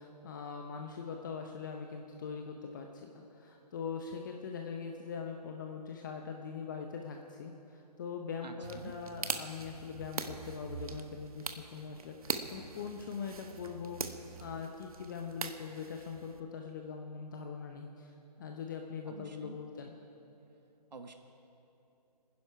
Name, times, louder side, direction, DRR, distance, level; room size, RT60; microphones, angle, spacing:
voice 1, 0.0-18.1 18.4-19.9, left 6 dB, 30° left, 3 dB, 0.8 m, -42 dB
voice 2, 8.4-9.0 19.1-19.6 20.9-21.1, right 3 dB, 80° right, 5 dB, 1.3 m, -48 dB
sound 1, 8.6-16.4, right 5 dB, 60° right, 1.1 m, -42 dB
23.5 x 10.5 x 5.7 m, 3.0 s
figure-of-eight pair, 150°, 21 cm